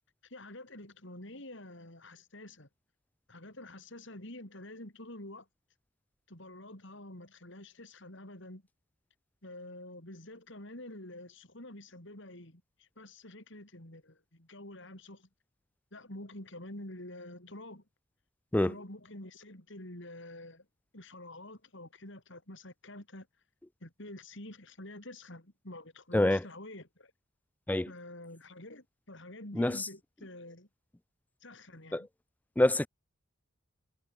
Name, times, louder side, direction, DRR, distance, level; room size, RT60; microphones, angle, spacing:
voice 1, 0.2-2.7 3.3-5.5 6.3-8.6 9.4-15.3 15.9-17.8 18.6-20.7 20.9-23.3 23.8-27.1 27.9-30.7 31.4-32.1, left 1 dB, 60° left, 4.9 m, -48 dB
voice 2, 29.5-29.9 31.9-32.0 32.6-32.9, left 1 dB, 10° left, 0.3 m, -26 dB
head